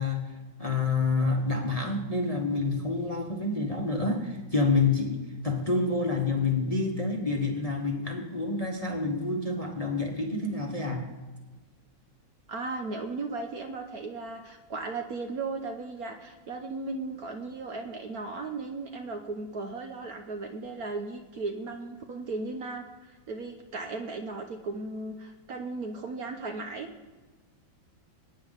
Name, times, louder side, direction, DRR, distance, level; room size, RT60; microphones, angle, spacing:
voice 1, 0.0-11.1, left 3 dB, 20° left, 1 dB, 1.1 m, -28 dB
voice 2, 12.5-26.9, right 3 dB, 55° right, 4 dB, 1.2 m, -36 dB
20.5 x 9.6 x 4.1 m, 1.3 s
omnidirectional pair, 2.1 m